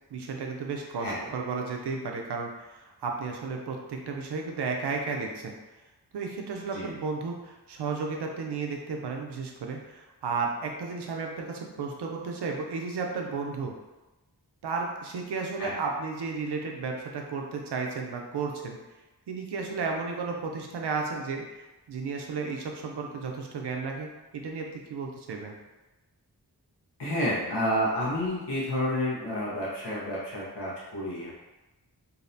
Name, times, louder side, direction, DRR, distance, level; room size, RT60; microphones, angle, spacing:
voice 1, 0.1-5.5 6.1-13.7 14.6-18.8 19.3-21.5 21.9-24.1 24.3-25.6, right 4 dB, 75° right, 1 dB, 0.5 m, -33 dB
voice 2, 27.0-31.3, equal, 90° left, -8 dB, 0.8 m, -30 dB
2.6 x 2.0 x 2.6 m, 1.1 s
cardioid pair, 40°, 40 cm